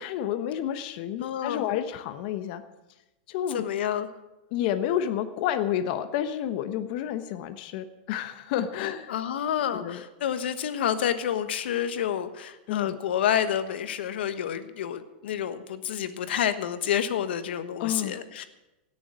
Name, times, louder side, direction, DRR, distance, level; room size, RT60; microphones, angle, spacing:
voice 1, 0.0-2.6 3.3-3.6 4.5-9.1 9.7-10.0 12.7-13.0 17.8-18.4, left 10 dB, 50° left, 9 dB, 1.1 m, -30 dB
voice 2, 1.2-1.7 3.5-4.1 9.1-18.4, left 9 dB, 80° left, 11 dB, 1.2 m, -29 dB
17.0 x 7.1 x 7.5 m, 0.99 s
supercardioid pair, 150°, 6 cm